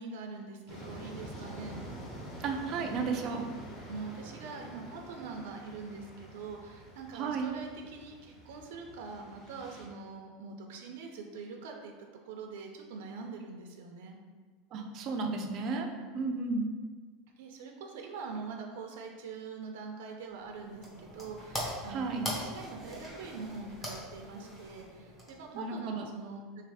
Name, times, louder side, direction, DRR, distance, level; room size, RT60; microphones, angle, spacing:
voice 1, 0.0-1.8 3.9-14.2 16.0-16.1 17.4-26.6, right 4 dB, 75° right, 2 dB, 0.6 m, -43 dB
sound 1, 0.7-9.8, equal, 30° left, 1.3 m, -47 dB
voice 2, 2.4-3.5 7.1-7.5 14.7-15.9 16.1-16.7 21.9-22.3 25.5-26.1, right 4 dB, 30° right, 2 dB, 0.5 m, -33 dB
sound 2, 20.3-25.7, equal, 10° left, 0.8 m, -42 dB
3.3 x 3.3 x 4.8 m, 1.5 s
supercardioid pair, 175°, 0 cm